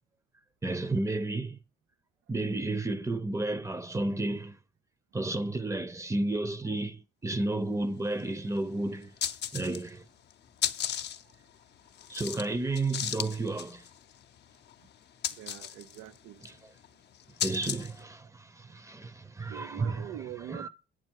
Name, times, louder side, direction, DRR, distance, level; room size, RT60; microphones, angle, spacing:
voice 1, 0.6-1.6 2.3-4.6 5.1-9.1 9.5-10.0 12.1-13.9 16.4-16.5 17.4-20.1 20.5-20.7, right 2 dB, 15° right, 0.7 m, -32 dB
sound 1, 8.2-8.3 8.6-8.7 9.0-10.0 10.3-18.0, left 10 dB, 60° left, 0.7 m, -36 dB
voice 2, 15.4-16.4 19.5-20.7, right 13 dB, 90° right, 0.5 m, -43 dB
8.5 x 7.5 x 4.6 m
cardioid pair, 90°, 20 cm